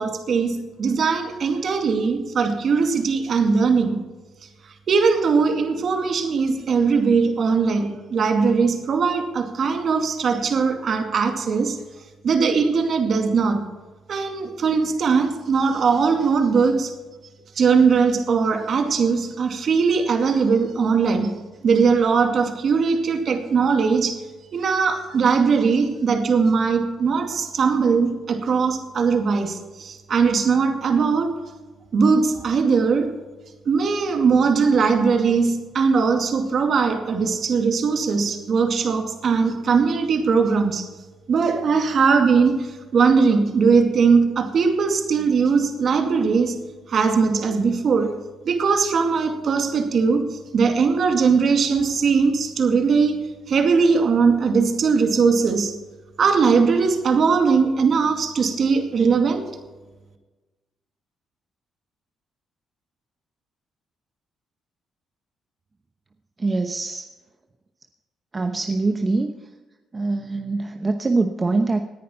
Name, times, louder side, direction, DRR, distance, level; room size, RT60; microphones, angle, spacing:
voice 1, 0.0-4.0 4.9-11.8 12.2-13.6 14.1-16.9 17.6-21.3 21.6-24.2 24.5-31.3 31.9-33.1 33.7-40.9 41.3-46.6 46.9-48.1 48.5-50.2 50.5-53.2 53.5-55.7 56.2-59.4, right 5 dB, 55° right, 5 dB, 2.2 m, -20 dB
voice 2, 66.4-67.1 68.3-69.3 69.9-71.8, right 3 dB, 30° right, 6 dB, 0.9 m, -23 dB
18.5 x 10.5 x 4.4 m, 1.2 s
cardioid pair, 90°, 0 cm